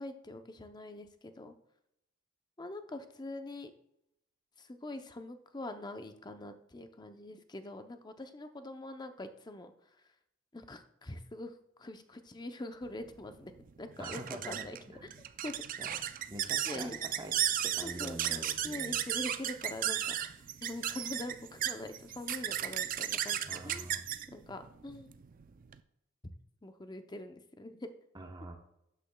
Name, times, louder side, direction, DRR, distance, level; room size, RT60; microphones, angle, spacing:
voice 1, 0.0-1.5 2.6-3.7 4.6-9.7 10.5-13.5 13.8-14.2 14.5-14.8 15.4-15.5 16.7-17.0 17.8-23.9 24.3-25.1 26.6-27.9, left 1 dB, 20° left, 8 dB, 0.6 m, -44 dB
sound 1, 12.9-25.8, right 11 dB, 40° right, 0.4 m, -35 dB
voice 2, 14.0-15.1 15.8-16.0 16.3-17.3 17.6-19.0 23.5-24.0 28.1-28.6, right 2 dB, 20° right, 3 dB, 0.9 m, -45 dB
12.0 x 8.4 x 2.3 m, 0.82 s
head